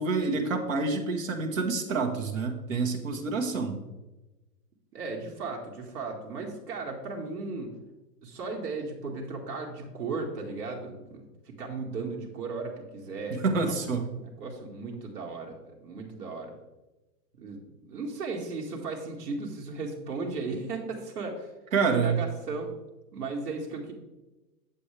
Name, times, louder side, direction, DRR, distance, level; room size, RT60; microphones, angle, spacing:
voice 1, 0.0-3.8 13.3-14.0 21.7-22.2, right 4 dB, 55° right, 4 dB, 1.6 m, -27 dB
voice 2, 4.9-7.7 8.2-16.5 17.4-21.5 21.9-22.7 23.1-23.9, right 3 dB, 70° right, 0 dB, 1.9 m, -36 dB
8.9 x 7.6 x 3.4 m, 1.0 s
hypercardioid pair, 165°, 47 cm